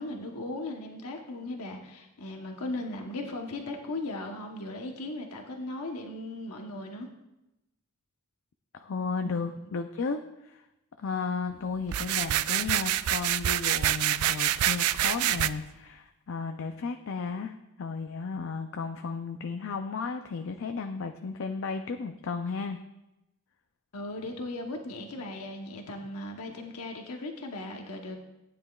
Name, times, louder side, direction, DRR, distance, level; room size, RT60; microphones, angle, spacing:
voice 1, 0.0-7.1 9.2-9.4 23.9-28.2, left 2 dB, 90° left, 2 dB, 1.0 m, -37 dB
voice 2, 8.7-10.6 11.0-22.8, left 4 dB, 60° left, 6 dB, 0.5 m, -34 dB
sound 1, 11.9-15.5, right 12 dB, 75° right, 0.3 m, -26 dB
15.5 x 9.6 x 2.4 m, 0.94 s
head